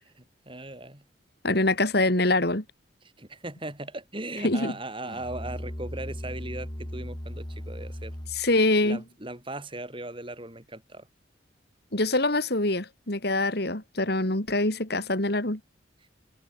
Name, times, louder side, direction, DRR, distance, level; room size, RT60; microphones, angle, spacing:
voice 1, 0.0-1.0 3.0-8.2 8.8-11.1, right 2 dB, 25° right, 6.2 m, -38 dB
voice 2, 1.4-2.6 4.4-4.7 8.3-9.0 11.9-15.6, left 2 dB, 55° left, 3.4 m, -24 dB
Musical instrument, 5.0-8.6, equal, 20° left, 2.1 m, -37 dB
head